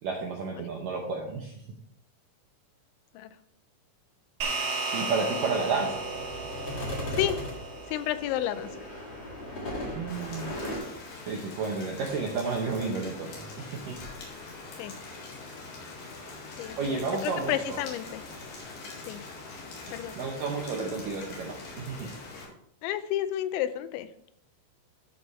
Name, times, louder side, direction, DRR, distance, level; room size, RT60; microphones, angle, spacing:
voice 1, 0.0-1.6 4.9-6.1 9.9-10.5 11.3-14.0 16.8-17.8 20.2-22.1, right 4 dB, 80° right, 0 dB, 1.9 m, -31 dB
sound 1, 4.4-9.1, right 3 dB, 60° right, 2.3 m, -35 dB
sound 2, 5.3-10.8, left 1 dB, 40° left, 1.5 m, -38 dB
voice 2, 7.9-8.8 14.8-14.9 16.6-18.2 19.1-19.2 19.9-20.2 22.8-24.1, left 12 dB, 85° left, 12 dB, 2.9 m, -31 dB
Rain, 10.1-22.4, left 3 dB, 60° left, 3.3 m, -43 dB
12.5 x 5.4 x 3.2 m, 0.70 s
omnidirectional pair, 5.2 m